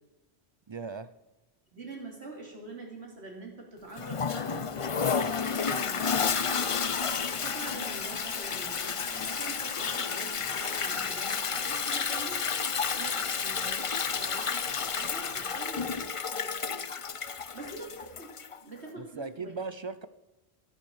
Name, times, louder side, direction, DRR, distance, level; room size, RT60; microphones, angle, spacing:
voice 1, 0.7-1.1 19.0-20.1, right 4 dB, 35° right, 13 dB, 0.5 m, -38 dB
voice 2, 1.7-6.7 7.3-12.4 12.9-16.8 17.5-18.3 18.6-19.5, right 2 dB, 90° right, 0 dB, 3.5 m, -45 dB
Toilet flush, 4.0-18.6, left 6 dB, 40° left, 0.6 m, -31 dB
sound 1, 5.0-15.5, left 2 dB, 80° left, 2.6 m, -51 dB
14.0 x 11.0 x 7.3 m, 1.0 s
omnidirectional pair, 1.1 m